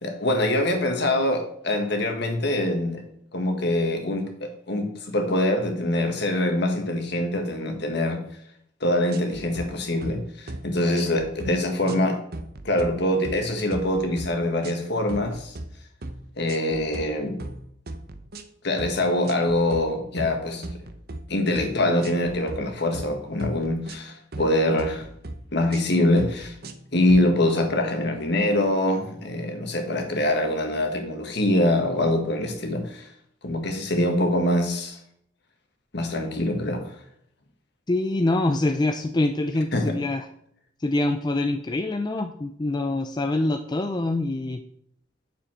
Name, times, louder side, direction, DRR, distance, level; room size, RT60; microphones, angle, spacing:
voice 1, 0.0-3.0 3.3-8.2 8.8-12.2 12.6-15.5 16.4-17.4 18.6-20.6 21.3-25.0 25.5-26.5 26.9-33.1 33.4-35.0 35.9-36.8 39.7-40.0, left 1 dB, 60° left, 4 dB, 1.6 m, -24 dB
sound 1, 9.1-9.7 10.0-10.2 10.5-10.7 10.9-11.6 11.9-12.1 12.3-13.0 13.2-13.4 13.7-14.3 14.6-14.8 15.1-15.7 16.0-16.2 16.5-17.1 17.4-17.6 17.9-18.5 18.8-19.0 19.2-19.9 20.2-21.2 21.6-21.7 22.0-22.6 22.9-23.1 23.4-24.5 24.8-25.4 25.7-25.9 26.2-26.8 27.1-27.3, right 2 dB, 50° right, 0.8 m, -37 dB
voice 2, 37.9-40.3 40.8-44.6, left 2 dB, 20° left, 7 dB, 0.4 m, -25 dB
9.0 x 7.0 x 4.4 m, 0.70 s
head